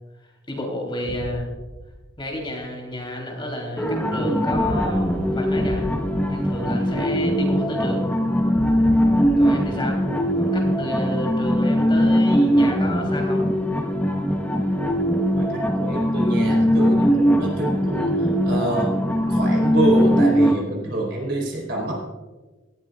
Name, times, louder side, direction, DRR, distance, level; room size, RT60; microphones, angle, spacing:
voice 1, 0.5-1.5 2.2-5.9 6.3-8.1 9.4-10.0 10.4-13.5, left 1 dB, 25° left, 0 dB, 3.1 m, -31 dB
sound 1, 1.1-2.4 4.5-7.5 8.5-10.7, equal, 45° left, 2.1 m, -35 dB
sound 2, 3.8-20.5, equal, 10° left, 1.1 m, -21 dB
voice 2, 15.4-19.0 19.3-22.0, right 1 dB, 55° right, -2 dB, 4.1 m, -26 dB
18.0 x 14.5 x 2.4 m, 1.3 s
head